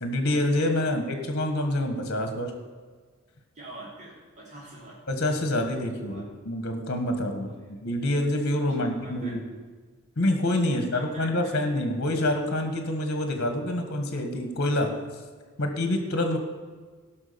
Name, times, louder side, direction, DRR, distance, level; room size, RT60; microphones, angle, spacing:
voice 1, 0.0-2.5 5.1-9.4 10.2-14.9 15.6-16.4, left 1 dB, 50° left, 6 dB, 1.6 m, -27 dB
voice 2, 3.5-5.0 6.1-6.2 7.4-7.7 8.8-9.3 10.7-11.5, right 2 dB, 35° right, -6 dB, 3.1 m, -45 dB
16.0 x 6.0 x 6.9 m, 1.5 s
head